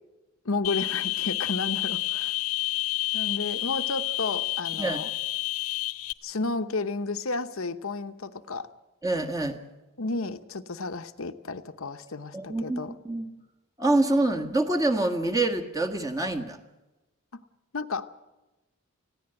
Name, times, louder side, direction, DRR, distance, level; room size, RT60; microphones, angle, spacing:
voice 1, 0.4-2.3 3.1-5.1 6.2-8.7 10.0-12.9 17.3-17.4 17.7-18.1, left 3 dB, 65° left, 8 dB, 0.9 m, -32 dB
sound 1, 0.6-6.1, left 17 dB, 85° left, 1.1 m, -29 dB
voice 2, 9.0-9.6 12.3-13.3 13.8-16.6, right 2 dB, 15° right, 4 dB, 1.6 m, -26 dB
20.5 x 15.5 x 8.9 m, 1.0 s
head